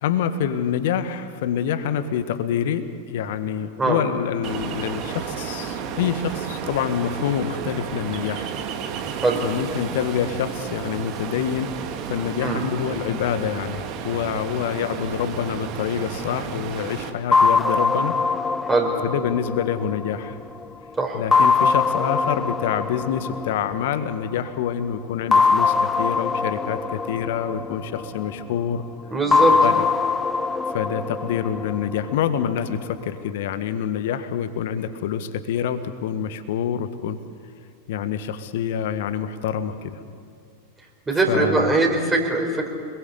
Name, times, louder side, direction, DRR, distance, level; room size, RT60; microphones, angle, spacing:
voice 1, 0.0-8.5 9.4-11.7 12.1-18.1 19.0-20.4 21.1-28.8 29.5-29.8 30.7-37.2 37.9-40.0 41.3-41.7, left 8 dB, 55° left, 11 dB, 1.6 m, -26 dB
Ocean, 4.4-17.1, right 7 dB, 40° right, 2.2 m, -32 dB
sound 1, 17.3-20.6 21.3-24.2 25.3-28.4 29.3-32.4, left 4 dB, 15° left, 0.7 m, -22 dB
voice 2, 29.1-29.6 41.1-42.7, right 3 dB, 15° right, 1 dB, 4.6 m, -21 dB
26.0 x 22.0 x 8.4 m, 2.3 s
figure-of-eight pair, 90°, 0 cm